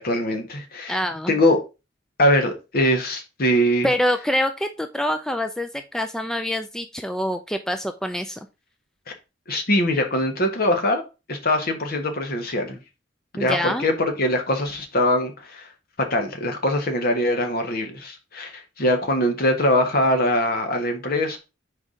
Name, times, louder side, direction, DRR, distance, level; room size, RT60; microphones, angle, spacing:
voice 1, 0.0-1.0 1.3-1.6 2.2-3.9 9.5-11.0 11.3-12.8 13.3-15.7 16.0-21.4, left 1 dB, 55° left, 1.3 m, -22 dB
voice 2, 0.9-1.4 3.8-8.4 13.4-13.9, equal, 5° left, 0.3 m, -25 dB
4.7 x 4.1 x 4.9 m
head